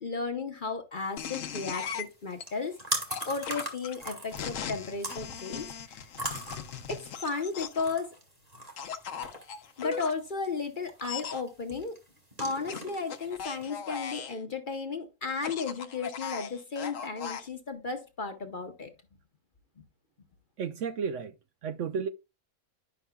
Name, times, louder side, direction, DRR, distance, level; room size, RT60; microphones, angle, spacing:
voice 1, 0.0-6.1 6.9-8.2 9.8-12.0 12.4-18.9, left 4 dB, 40° left, 0.9 m, -34 dB
sound 1, 1.0-13.7, right 1 dB, 25° right, 2.1 m, -41 dB
sound 2, 1.2-2.4 3.1-7.9 8.8-10.1 11.0-11.4 12.7-14.4 15.3-17.5, left 7 dB, 65° left, 1.1 m, -38 dB
voice 2, 20.6-21.3 21.6-22.1, right 6 dB, 70° right, 0.8 m, -32 dB
10.5 x 5.8 x 2.3 m
omnidirectional pair, 1.6 m